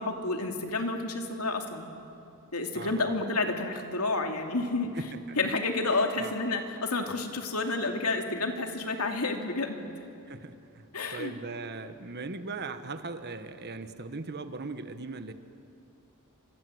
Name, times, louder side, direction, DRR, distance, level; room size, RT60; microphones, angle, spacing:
voice 1, 0.0-1.9 2.5-4.9 5.4-9.9 10.9-11.3, left 3 dB, 85° left, 3 dB, 2.7 m, -30 dB
voice 2, 2.7-3.2 4.9-5.4 6.1-6.3 10.3-15.3, right 3 dB, 50° right, 10 dB, 1.4 m, -39 dB
29.5 x 25.5 x 8.0 m, 2.7 s
head